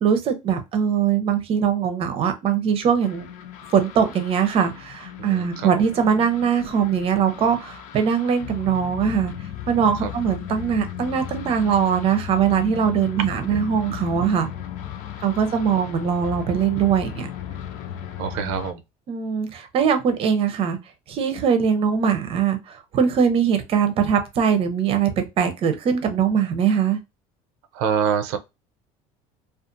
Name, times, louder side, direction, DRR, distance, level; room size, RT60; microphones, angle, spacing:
voice 1, 0.0-3.3 3.7-9.3 9.7-14.5 15.2-17.3 19.1-20.8 21.1-27.0, right 7 dB, 40° right, 0.6 m, -21 dB
sound 1, 3.0-18.7, left 10 dB, 60° left, 0.4 m, -36 dB
voice 2, 5.2-5.7 9.9-10.1 13.2-13.3 13.5-13.6 14.2-14.3 18.2-18.8 27.7-28.4, right 7 dB, 80° right, 0.5 m, -26 dB
2.5 x 2.4 x 2.5 m
cardioid pair, 135°, 15 cm